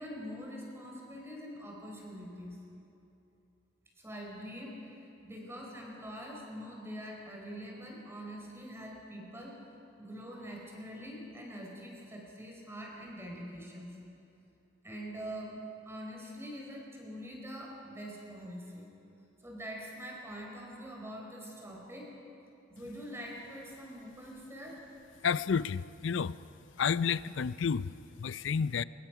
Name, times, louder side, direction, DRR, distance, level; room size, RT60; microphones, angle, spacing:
voice 1, 0.0-2.6 4.0-9.6 10.0-14.0 14.8-15.6 15.9-18.9 19.4-22.2 22.7-24.8, equal, 15° right, -1 dB, 4.3 m, -44 dB
voice 2, 25.2-26.4 26.8-28.8, left 6 dB, 65° left, 17 dB, 0.5 m, -31 dB
23.0 x 21.5 x 6.0 m, 2.8 s
head